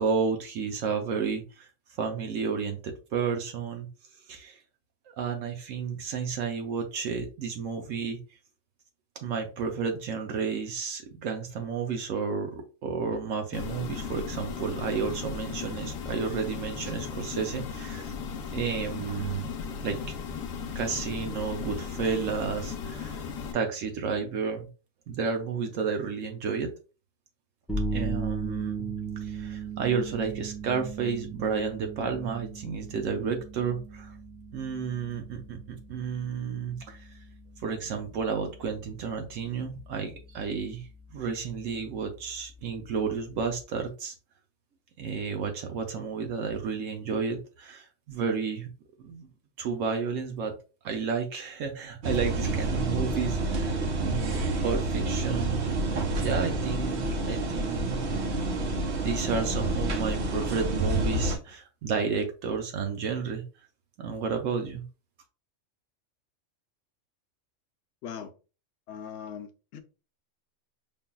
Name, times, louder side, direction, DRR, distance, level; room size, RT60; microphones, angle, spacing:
voice 1, 0.0-1.7 2.0-3.9 4.3-4.6 5.2-8.2 9.2-18.1 18.5-19.5 19.8-20.0 20.7-23.2 23.5-24.7 25.1-26.7 27.9-28.9 29.2-34.1 34.5-37.1 37.6-44.1 45.0-48.7 49.0-49.3 49.6-50.5 50.8-58.3 58.9-63.4 64.0-64.8, right 5 dB, 80° right, 4 dB, 1.0 m, -32 dB
sound 1, 13.5-23.5, left 6 dB, 90° left, 1.1 m, -36 dB
sound 2, 27.7-43.6, right 3 dB, ahead, 0.3 m, -38 dB
sound 3, 52.0-61.4, right 2 dB, 60° right, 1.0 m, -28 dB
voice 2, 68.0-68.3 68.9-69.8, left 7 dB, 65° left, 6 dB, 0.9 m, -40 dB
5.2 x 2.5 x 2.2 m, 0.33 s
omnidirectional pair, 1.3 m